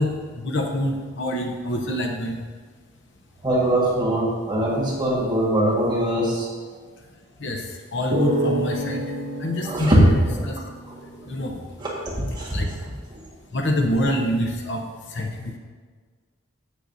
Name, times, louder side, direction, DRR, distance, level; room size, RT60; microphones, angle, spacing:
voice 1, 0.0-2.4 7.4-9.1 9.4-10.1 10.4-10.6 11.3-11.6 12.5-12.7 13.5-14.8 15.1-15.6, left 1 dB, 55° left, 2 dB, 0.8 m, -26 dB
voice 2, 3.4-6.5 9.6-10.0 10.3-10.4 11.8-11.9 12.3-12.7, right 1 dB, 20° right, -5 dB, 1.6 m, -22 dB
sound 1, 8.1-11.5, right 1 dB, 80° right, 1.8 m, -28 dB
15.0 x 6.4 x 2.7 m, 1.5 s
head